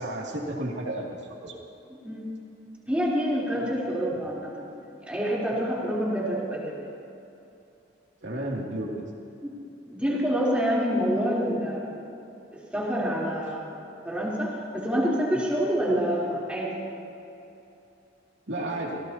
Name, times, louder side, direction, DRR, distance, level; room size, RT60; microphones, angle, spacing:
voice 1, 0.0-1.6 8.2-8.9 18.5-19.0, right 1 dB, 70° right, -2 dB, 2.8 m, -32 dB
voice 2, 2.9-6.9 9.4-9.5 9.8-12.0 12.5-13.8 14.0-16.8, equal, 5° right, -7 dB, 3.8 m, -27 dB
26.5 x 17.5 x 3.0 m, 2.8 s
head